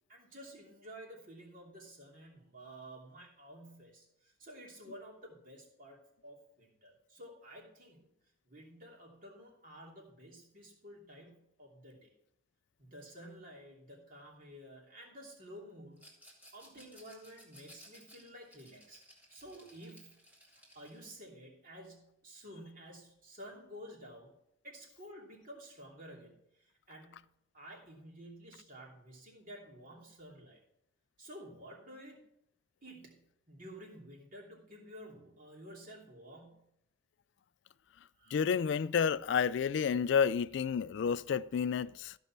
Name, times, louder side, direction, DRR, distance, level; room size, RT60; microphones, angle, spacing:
voice 1, 0.1-8.1 8.5-12.1 12.8-16.0 16.5-19.0 19.3-20.2 20.7-24.4 24.6-30.6 31.2-32.2 32.8-36.7 38.1-38.3, equal, 45° right, 2.9 m, -52 dB
Rattle, 16.0-21.1, equal, 10° right, 2.3 m, -59 dB
voice 2, 38.3-42.1, left 7 dB, 60° left, 0.3 m, -30 dB
14.5 x 5.5 x 5.9 m
head